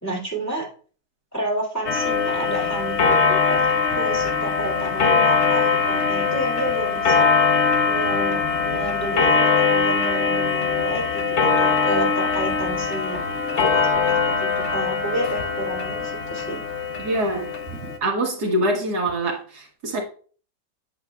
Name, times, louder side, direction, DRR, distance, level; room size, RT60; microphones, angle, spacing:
voice 1, 0.0-0.7 1.3-3.6 3.9-7.3 7.9-13.2 13.5-16.6 17.7-17.8, right 1 dB, 10° left, -2 dB, 2.4 m, -30 dB
Clock, 1.9-18.0, left 5 dB, 50° left, 1.0 m, -21 dB
voice 2, 17.0-17.5 18.0-20.0, right 1 dB, 65° right, 0 dB, 1.8 m, -24 dB
8.2 x 7.9 x 2.3 m, 0.41 s
omnidirectional pair, 1.9 m